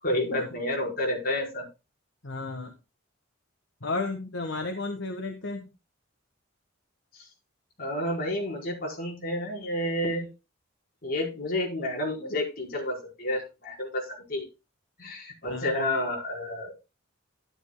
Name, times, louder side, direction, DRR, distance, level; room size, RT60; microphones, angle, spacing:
voice 1, 0.0-1.6 7.1-7.3 7.8-10.3 11.0-14.5 15.0-16.7, left 1 dB, 45° left, -1 dB, 4.8 m, -30 dB
voice 2, 2.2-2.7 3.8-5.7 15.5-15.8, left 3 dB, 65° left, 5 dB, 1.4 m, -33 dB
12.0 x 11.5 x 2.3 m, 0.27 s
head